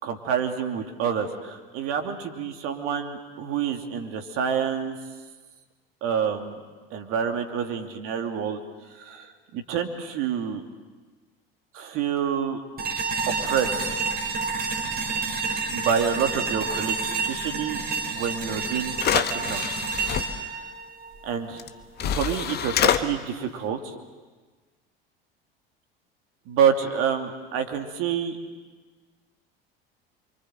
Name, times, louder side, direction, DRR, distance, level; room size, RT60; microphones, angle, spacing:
voice 1, 0.0-5.0 6.0-6.6 6.9-8.6 9.0-10.6 11.7-12.6 13.4-13.8 15.7-17.0 17.3-19.7 20.2-20.5 21.2-21.6 22.0-23.9 26.5-28.4, right 7 dB, 50° right, 5 dB, 2.9 m, -28 dB
sound 1, 12.8-21.8, right 4 dB, 30° right, 4.9 m, -29 dB
sound 2, 18.4-18.5 18.9-20.2 21.6-21.7 22.0-23.0, left 9 dB, 35° left, 1.4 m, -25 dB
28.5 x 24.5 x 7.9 m, 1.3 s
figure-of-eight pair, 70°, 29 cm